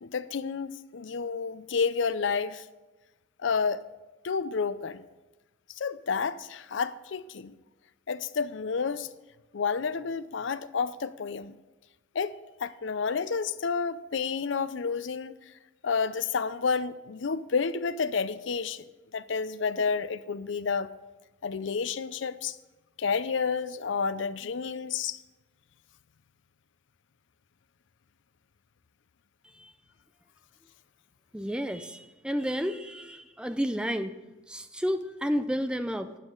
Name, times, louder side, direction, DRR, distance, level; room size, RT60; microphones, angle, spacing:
voice 1, 0.0-2.6 3.4-3.9 4.2-5.1 5.8-7.5 8.1-9.1 9.5-11.6 12.1-15.4 15.8-18.9 19.1-20.9 21.4-22.6 23.0-25.2, left 5 dB, 85° left, 0.5 m, -30 dB
voice 2, 31.3-34.1 34.5-36.1, equal, 5° right, 0.5 m, -31 dB
12.0 x 9.7 x 3.9 m
head